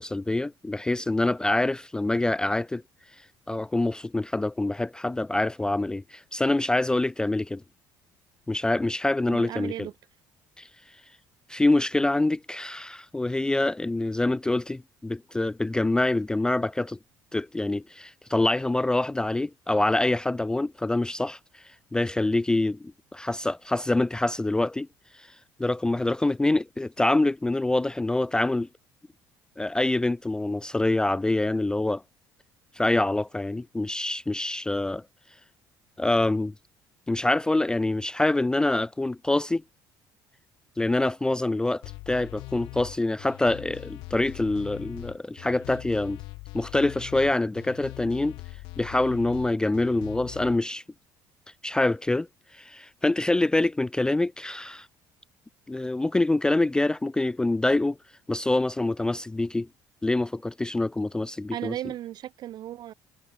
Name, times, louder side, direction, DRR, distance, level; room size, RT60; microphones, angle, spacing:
voice 1, 0.0-2.8 3.5-7.6 8.5-9.9 10.6-10.7 11.5-17.0 17.3-24.9 25.1-25.3 25.6-28.7 29.6-32.0 32.7-35.0 36.0-36.5 37.1-39.6 40.8-46.2 46.5-48.4 48.8-50.8 51.6-52.3 52.5-54.9 55.7-58.0 58.3-59.7 60.0-61.7, left 2 dB, 10° left, 0.3 m, -25 dB
voice 2, 9.3-9.9 61.5-62.9, right 13 dB, 60° right, 1.9 m, -35 dB
sound 1, 41.8-50.6, left 24 dB, 85° left, 2.8 m, -41 dB
cardioid pair, 100°, 8 cm